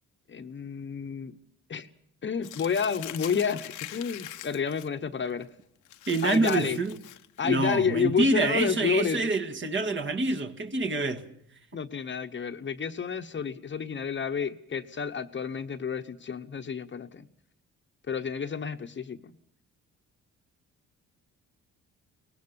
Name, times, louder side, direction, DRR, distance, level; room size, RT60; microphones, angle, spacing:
voice 1, 0.3-1.4 1.7-1.9 2.2-5.5 6.2-6.8 7.4-9.3 11.7-17.3 18.1-19.4, left 6 dB, 40° left, 1.1 m, -30 dB
Crumpling crinkling, 2.4-4.9 5.3-5.4 5.8-7.5, left 13 dB, 90° left, 1.1 m, -42 dB
voice 2, 6.1-6.9 7.4-11.3, right 3 dB, 40° right, 2.0 m, -26 dB
23.5 x 19.5 x 7.0 m
cardioid pair, 90°, 30 cm